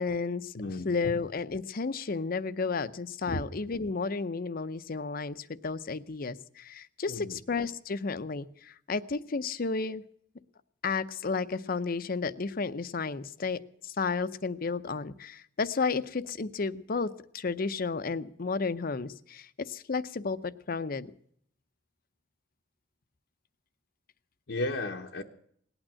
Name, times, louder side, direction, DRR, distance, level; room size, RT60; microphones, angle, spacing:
voice 1, 0.0-10.0 10.8-21.1, left 4 dB, 50° left, 14 dB, 0.6 m, -32 dB
voice 2, 0.5-0.9 3.3-3.4 7.1-7.3 24.5-25.2, left 2 dB, 75° left, 1 dB, 0.9 m, -34 dB
18.5 x 9.0 x 7.5 m, 0.66 s
head